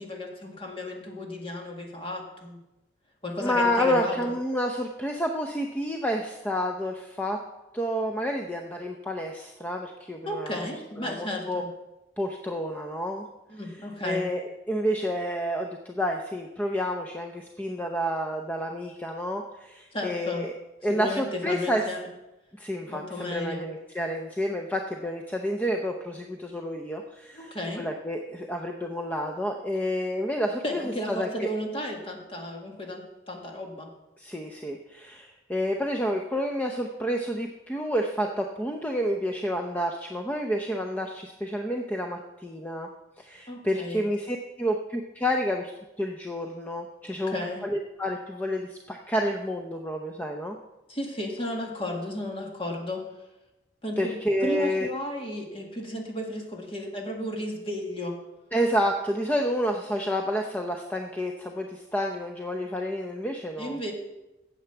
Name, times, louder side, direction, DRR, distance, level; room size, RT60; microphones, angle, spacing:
voice 1, 0.0-2.6 3.2-4.2 10.3-11.7 13.5-14.3 19.9-20.4 20.9-22.1 22.8-23.7 27.3-27.8 30.6-33.9 43.5-44.0 47.0-47.6 50.9-53.0 53.8-54.1 54.4-58.2 63.6-63.9, left 1 dB, 30° left, 0 dB, 2.0 m, -34 dB
voice 2, 3.4-7.4 7.7-10.6 11.0-11.6 12.2-13.3 14.0-20.5 20.8-21.9 22.6-30.8 31.1-31.5 34.2-42.9 43.2-45.7 46.0-47.3 47.6-50.6 54.0-54.9 58.5-63.8, equal, 10° left, 2 dB, 0.6 m, -29 dB
9.4 x 7.8 x 6.9 m, 0.98 s
head